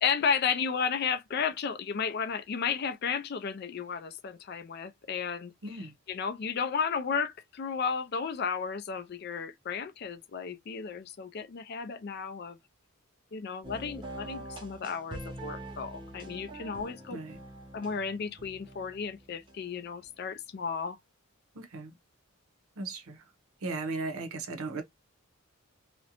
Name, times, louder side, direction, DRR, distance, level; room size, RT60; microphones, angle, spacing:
voice 1, 0.0-5.5 5.8-12.6 13.3-17.2 17.7-21.0, left 6 dB, 45° left, 0.3 m, -33 dB
voice 2, 5.6-5.9 17.1-17.4 21.5-21.9 22.8-23.2 23.6-24.8, right 3 dB, 75° right, 0.7 m, -36 dB
sound 1, 13.6-20.1, right 1 dB, 20° right, 0.5 m, -45 dB
2.5 x 2.1 x 2.8 m
head